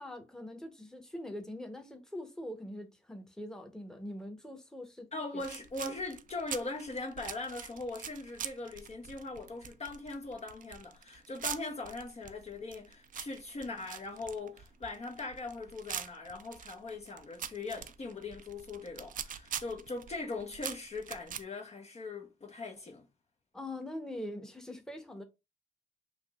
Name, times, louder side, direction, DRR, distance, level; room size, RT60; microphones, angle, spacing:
voice 1, 0.0-5.4 23.5-25.2, left 1 dB, 5° left, 0.9 m, -43 dB
voice 2, 5.1-23.1, left 3 dB, 35° left, 0.8 m, -40 dB
sound 1, 5.4-21.4, right 8 dB, 50° right, 0.4 m, -44 dB
3.4 x 2.6 x 2.3 m
supercardioid pair, 45°, 18 cm